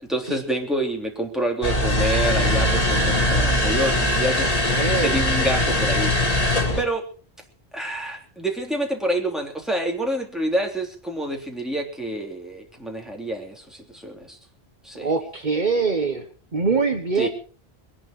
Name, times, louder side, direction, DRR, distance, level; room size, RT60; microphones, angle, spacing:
voice 1, 0.0-4.7 4.9-6.4 6.8-7.1 7.7-14.4 14.8-15.1 17.2-17.3, right 1 dB, ahead, 1 dB, 3.4 m, -27 dB
sound 1, 1.6-6.8, left 1 dB, 35° left, 2.5 m, -21 dB
voice 2, 4.7-5.1 15.0-16.3 16.5-17.3, right 4 dB, 45° right, 5 dB, 1.4 m, -23 dB
21.5 x 11.5 x 4.8 m, 0.42 s
omnidirectional pair, 1.1 m